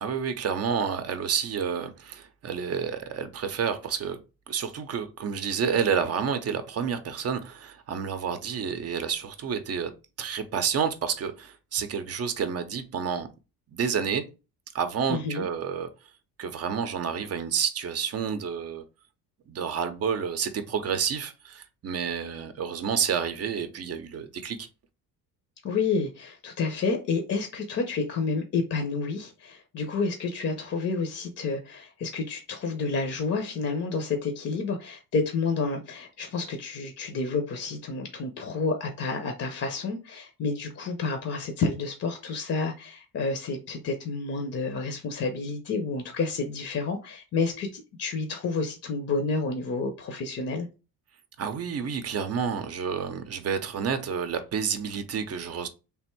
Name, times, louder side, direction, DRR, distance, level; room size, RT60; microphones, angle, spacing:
voice 1, 0.0-4.2 4.5-9.9 10.2-13.3 13.7-14.2 14.7-15.9 16.4-18.8 19.5-24.7 51.4-55.7, right 7 dB, 40° right, 0.6 m, -29 dB
voice 2, 15.1-15.4 25.6-50.7, left 4 dB, 40° left, 0.7 m, -30 dB
3.4 x 2.5 x 4.4 m
cardioid pair, 135°, 39 cm